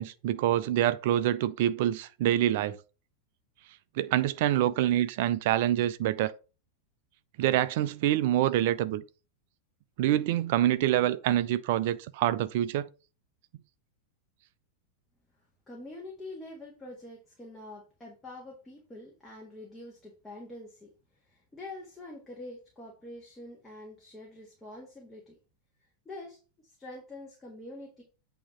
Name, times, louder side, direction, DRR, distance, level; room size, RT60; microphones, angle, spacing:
voice 1, 0.0-2.8 4.0-6.3 7.4-9.0 10.0-12.9, right 12 dB, 50° right, 0.5 m, -26 dB
voice 2, 15.7-20.9 21.2-25.3 26.1-28.0, left 2 dB, 10° left, 1.7 m, -45 dB
8.6 x 2.9 x 5.3 m
figure-of-eight pair, 90°, 0 cm